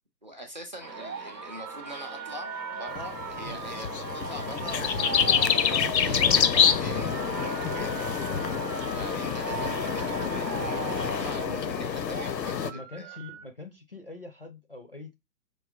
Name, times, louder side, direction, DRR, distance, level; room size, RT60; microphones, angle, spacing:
voice 1, 0.2-8.0 8.9-13.2, right 1 dB, 30° right, 0.5 m, -42 dB
Berlin Sunday Bells and Birds, 0.8-11.5, right 4 dB, 90° right, 0.9 m, -39 dB
sound 1, 1.0-13.4, right 6 dB, 65° right, 0.7 m, -41 dB
sound 2, 3.0-12.7, left 7 dB, 85° left, 0.6 m, -27 dB
voice 2, 12.6-15.2, left 3 dB, 40° left, 0.4 m, -44 dB
4.7 x 2.2 x 2.2 m
figure-of-eight pair, 135°, 50 cm